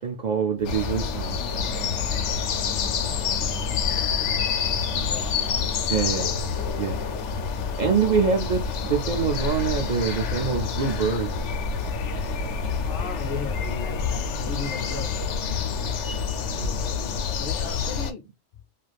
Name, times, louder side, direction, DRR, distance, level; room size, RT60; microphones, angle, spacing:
voice 1, 0.0-1.4 5.9-6.3 6.7-7.0 7.8-11.3, right 6 dB, 60° right, 0.5 m, -25 dB
sound 1, 0.6-18.1, left 6 dB, 90° left, 0.9 m, -27 dB
sound 2, 0.6-16.8, right 9 dB, 80° right, 0.9 m, -40 dB
voice 2, 5.1-5.6 12.8-15.6 16.5-18.2, left 4 dB, 60° left, 0.7 m, -37 dB
2.5 x 2.4 x 3.2 m
omnidirectional pair, 1.2 m